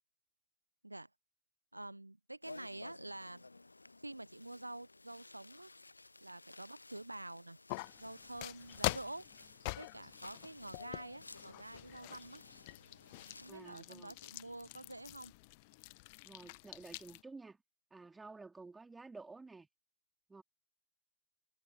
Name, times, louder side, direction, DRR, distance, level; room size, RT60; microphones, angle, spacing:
voice 1, 1.7-3.5 4.0-5.7 6.2-7.6 8.0-9.3 9.8-12.4 13.4-15.3, right 2 dB, 85° right, 0.6 m, -48 dB
sound 1, 2.4-13.5, left 3 dB, 80° left, 0.8 m, -56 dB
sound 2, 7.7-17.2, left 26 dB, 50° left, 1.0 m, -45 dB
voice 2, 13.5-14.1 16.2-17.6 17.9-19.7 20.3-20.4, right 3 dB, 10° right, 3.4 m, -52 dB
figure-of-eight pair, 90°, 0 cm